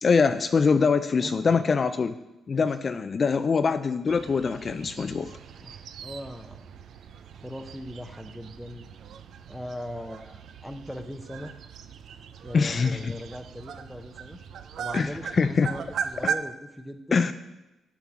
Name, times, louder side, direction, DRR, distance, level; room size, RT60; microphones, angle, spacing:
voice 1, 0.0-2.1 2.5-5.3 12.5-13.1 14.9-15.7 16.2-16.3 17.1-17.3, left 5 dB, 50° left, 10 dB, 0.4 m, -23 dB
voice 2, 1.2-1.6 2.5-2.7 5.6-6.6 7.3-8.9 9.5-11.5 12.4-14.4 14.8-17.2, left 1 dB, ahead, 5 dB, 0.7 m, -40 dB
sound 1, 4.1-16.4, right 7 dB, 70° right, 0.5 m, -39 dB
7.5 x 5.9 x 6.0 m, 0.99 s
supercardioid pair, 55°, 0 cm